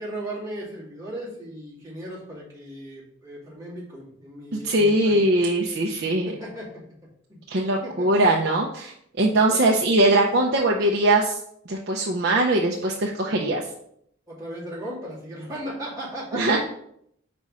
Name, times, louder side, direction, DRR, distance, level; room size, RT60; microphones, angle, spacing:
voice 1, 0.0-5.2 6.3-6.7 7.3-7.4 7.8-8.1 9.5-9.8 14.3-16.6, right 1 dB, 15° right, -8 dB, 2.5 m, -36 dB
voice 2, 4.5-6.3 7.5-8.9 9.2-11.4 11.7-13.6 16.3-16.6, right 1 dB, 55° right, -1 dB, 0.6 m, -21 dB
5.4 x 4.3 x 4.8 m, 0.70 s
head